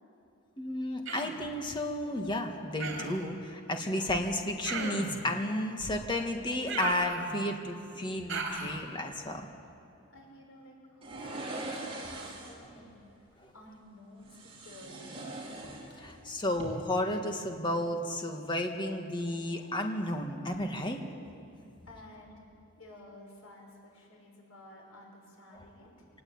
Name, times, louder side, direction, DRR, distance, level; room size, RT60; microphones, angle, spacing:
voice 1, 0.6-9.5 13.4-13.5 16.0-21.0, left 1 dB, 25° left, 4 dB, 1.9 m, -32 dB
Human voice, 1.1-1.4 2.8-3.3 4.6-5.2 6.7-7.6 8.3-8.8, right 3 dB, 60° right, 3.7 m, -36 dB
voice 2, 10.1-11.7 11.9-15.2 21.9-22.5 22.8-26.1, left 1 dB, 85° left, 0 dB, 6.2 m, -53 dB
sound 1, 11.0-12.7 14.2-16.2 16.5-16.6, right 2 dB, 25° right, 4.4 m, -41 dB
26.0 x 19.0 x 8.8 m, 2.7 s
head